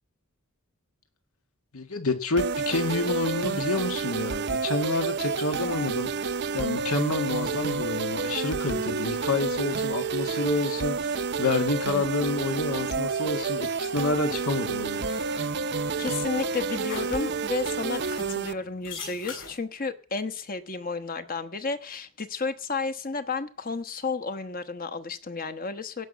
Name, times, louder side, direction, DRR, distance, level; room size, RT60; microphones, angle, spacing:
voice 1, 1.7-15.1, left 3 dB, 85° left, 1.9 m, -29 dB
sound 1, 2.4-18.5, right 4 dB, 50° right, 0.6 m, -29 dB
sound 2, 14.5-19.6, left 4 dB, 60° left, 7.7 m, -45 dB
voice 2, 16.0-26.1, left 4 dB, 40° left, 1.0 m, -32 dB
17.0 x 5.9 x 8.2 m
head